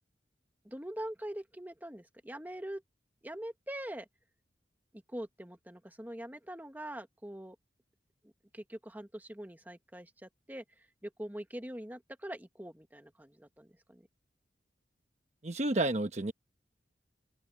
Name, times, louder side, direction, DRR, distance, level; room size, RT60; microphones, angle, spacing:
voice 1, 0.6-2.8 3.2-4.1 5.1-7.5 8.5-10.6 11.0-14.1, right 1 dB, 10° right, 1.5 m, -43 dB
voice 2, 15.4-16.3, right 2 dB, 40° right, 1.0 m, -30 dB
open air
head